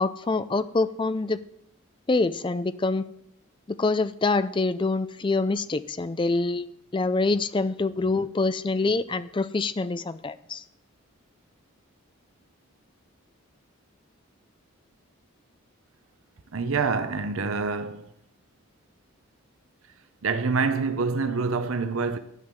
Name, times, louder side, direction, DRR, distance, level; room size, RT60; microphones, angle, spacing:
voice 1, 0.0-1.4 2.1-3.1 3.7-10.6, left 3 dB, 20° left, 0.4 m, -25 dB
voice 2, 16.5-18.1 20.2-22.2, right 4 dB, 70° right, 0.7 m, -26 dB
12.0 x 5.5 x 8.1 m
head